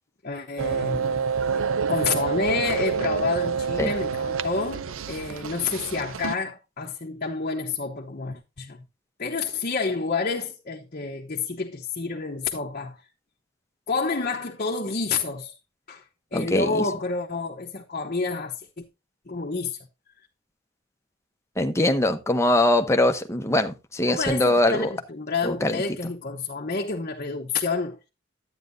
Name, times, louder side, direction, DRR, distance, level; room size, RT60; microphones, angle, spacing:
voice 1, 0.2-1.2 1.9-8.8 9.2-13.0 13.9-15.5 15.9-16.0 16.3-18.8 19.3-19.8 24.1-28.0, left 4 dB, 45° left, 1.0 m, -29 dB
sound 1, 0.6-6.4, right 6 dB, 85° right, 0.5 m, -27 dB
voice 2, 16.3-16.8 21.6-24.9 25.4-25.8, left 1 dB, 15° left, 0.9 m, -22 dB
11.5 x 9.0 x 2.7 m
head